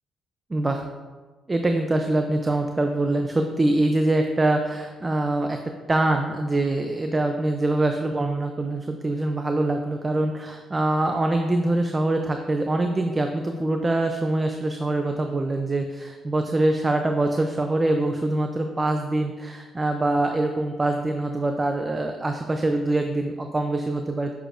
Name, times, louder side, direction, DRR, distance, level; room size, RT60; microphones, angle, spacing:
voice 1, 0.5-0.9 1.5-5.6 5.9-24.3, right 2 dB, 25° right, 5 dB, 0.5 m, -24 dB
6.9 x 6.6 x 2.5 m, 1.4 s
cardioid pair, 90°, 0 cm